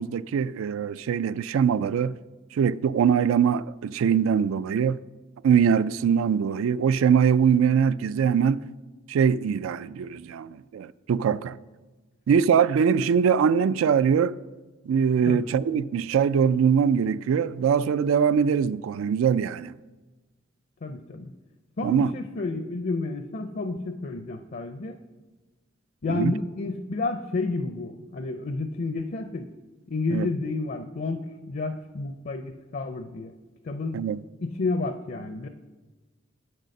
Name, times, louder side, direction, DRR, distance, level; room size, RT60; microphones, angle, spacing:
voice 1, 0.0-2.1 2.5-5.0 5.4-8.6 9.1-11.6 12.3-14.4 14.9-19.7 21.8-22.1 26.1-26.3 30.1-30.3 33.9-34.2, right 7 dB, 90° right, 0.3 m, -22 dB
voice 2, 20.8-21.3 21.8-25.0 26.0-29.5 29.9-31.2 31.5-33.3 33.6-34.0 34.4-35.5, left 3 dB, 50° left, 0.5 m, -30 dB
8.2 x 6.6 x 6.4 m
head